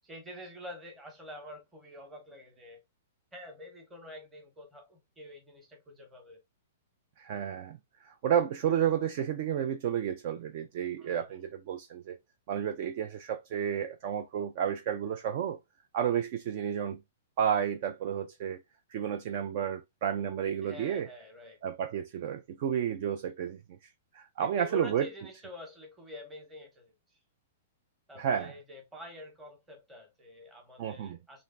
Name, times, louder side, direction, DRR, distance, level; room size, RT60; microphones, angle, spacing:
voice 1, 0.0-2.8 3.3-6.4 11.0-11.4 20.6-21.6 24.4-26.9 28.1-31.4, left 1 dB, 10° right, 0.9 m, -47 dB
voice 2, 7.2-12.2 12.5-15.6 15.9-17.0 17.4-18.6 18.9-21.1 21.6-23.6 24.1-25.1 28.2-28.5 30.8-31.2, right 9 dB, 40° right, 0.3 m, -31 dB
3.2 x 2.4 x 2.4 m
hypercardioid pair, 165°, 0 cm